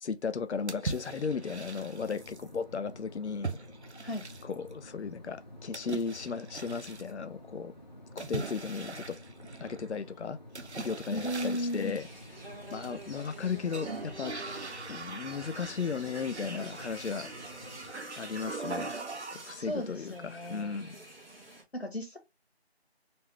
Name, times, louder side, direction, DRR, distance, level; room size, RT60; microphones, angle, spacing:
voice 1, 0.0-3.6 4.4-7.7 8.2-9.2 9.6-10.4 10.8-12.1 12.7-14.3 14.9-17.3 18.2-19.0 19.3-20.9, left 5 dB, 85° left, 0.5 m, -35 dB
sound 1, 0.7-2.5 3.4-4.7 5.7-7.1 8.2-9.9 10.5-12.1 12.7-13.3 13.7-19.7, right 3 dB, 80° right, 0.8 m, -41 dB
sound 2, 1.0-17.9, left 1 dB, 40° left, 0.7 m, -50 dB
voice 2, 11.1-12.0 19.6-20.8 21.7-22.2, equal, 70° left, 1.4 m, -35 dB
sound 3, 11.8-21.6, right 1 dB, 60° right, 1.2 m, -48 dB
4.0 x 2.2 x 3.2 m
figure-of-eight pair, 175°, 33 cm